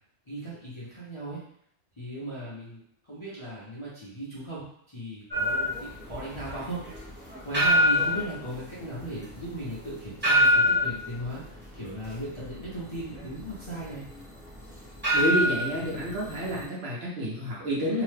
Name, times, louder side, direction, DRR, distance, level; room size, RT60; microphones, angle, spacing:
voice 1, 0.3-1.4 2.0-6.8 7.4-14.0, right 1 dB, 30° left, -9 dB, 0.7 m, -37 dB
sound 1, 5.3-16.6, equal, 10° right, 0.8 m, -26 dB
voice 2, 15.1-18.0, equal, 60° right, -4 dB, 1.0 m, -29 dB
2.8 x 2.2 x 3.2 m, 0.67 s
omnidirectional pair, 1.2 m